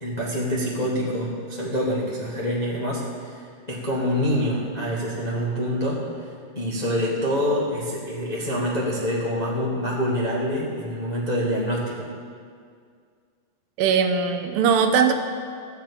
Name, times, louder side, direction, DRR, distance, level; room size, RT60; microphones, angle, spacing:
voice 1, 0.0-12.1, equal, 45° left, -5 dB, 0.5 m, -26 dB
voice 2, 13.8-15.1, right 6 dB, 85° right, 5 dB, 2.5 m, -20 dB
13.5 x 5.9 x 8.4 m, 2.1 s
omnidirectional pair, 4.0 m